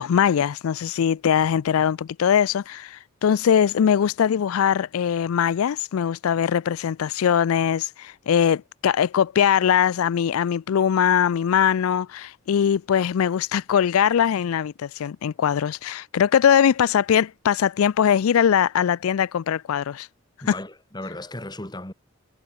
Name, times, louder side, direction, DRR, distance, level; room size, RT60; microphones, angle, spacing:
voice 1, 0.0-20.1 20.5-20.6, left 8 dB, 85° left, 0.4 m, -21 dB
voice 2, 20.4-21.9, left 1 dB, 20° left, 2.4 m, -36 dB
head